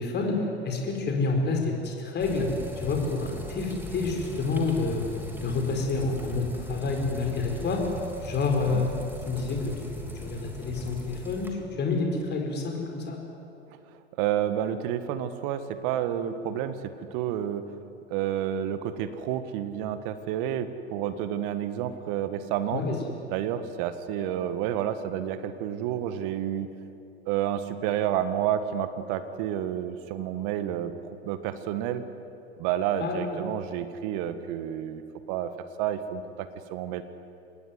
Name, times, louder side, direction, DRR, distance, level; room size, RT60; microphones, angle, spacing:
voice 1, 0.0-2.5 2.8-5.0 5.4-7.9 8.2-9.0 9.3-9.6 9.9-13.2 22.7-23.0 33.0-33.4, left 3 dB, 30° left, 1 dB, 4.9 m, -28 dB
sound 1, 2.2-11.5, equal, 5° right, 3.6 m, -39 dB
voice 2, 14.2-16.8 17.1-17.6 18.1-22.8 23.3-26.7 27.3-30.9 31.2-32.0 32.6-35.0 35.3-35.5 35.8-37.0, right 10 dB, 55° right, 11 dB, 1.7 m, -30 dB
25.0 x 19.0 x 9.4 m, 2.9 s
figure-of-eight pair, 85°, 32 cm